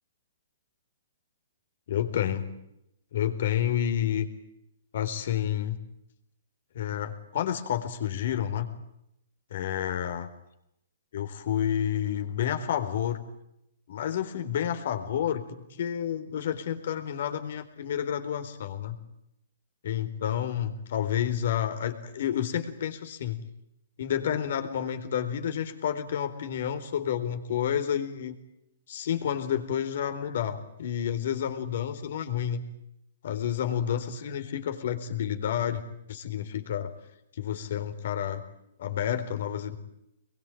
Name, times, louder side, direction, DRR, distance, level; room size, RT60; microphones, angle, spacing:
voice 1, 1.9-2.5 3.1-4.3 4.9-5.8 6.7-8.7 9.5-10.3 11.1-13.2 13.9-19.0 19.8-23.4 24.0-28.4 28.9-32.6 33.2-35.8 36.1-36.9 37.3-38.4 38.8-39.8, left 9 dB, 60° left, 7 dB, 4.2 m, -30 dB
25.0 x 22.5 x 9.3 m, 0.81 s
hypercardioid pair, 155°, 0 cm